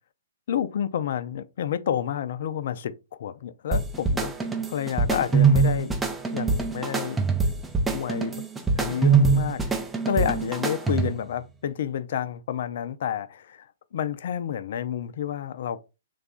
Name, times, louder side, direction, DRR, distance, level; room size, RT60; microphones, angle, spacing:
voice 1, 0.5-4.3 4.7-5.9 6.3-7.2 7.9-8.4 8.8-9.7 10.0-15.8, left 9 dB, 55° left, 0.4 m, -30 dB
sound 1, 3.7-11.3, right 4 dB, 10° right, 0.5 m, -23 dB
3.3 x 2.3 x 3.8 m
hypercardioid pair, 125°, 0 cm